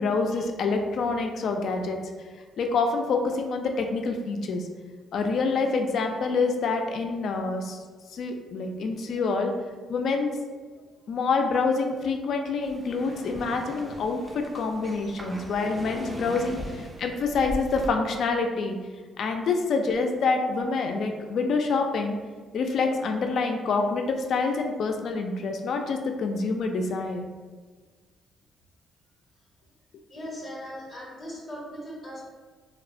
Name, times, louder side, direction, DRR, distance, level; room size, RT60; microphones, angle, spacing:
voice 1, 0.0-2.0 2.6-4.7 5.1-7.8 8.1-9.5 9.9-10.3 11.1-16.6 17.0-18.8 19.2-22.2 22.5-27.3, left 4 dB, 65° left, 4 dB, 0.3 m, -26 dB
sound 1, 12.6-17.9, right 1 dB, 20° right, 0.4 m, -39 dB
voice 2, 30.1-32.2, equal, 20° left, -4 dB, 0.6 m, -39 dB
2.9 x 2.0 x 2.5 m, 1.4 s
cardioid pair, 90°, 0 cm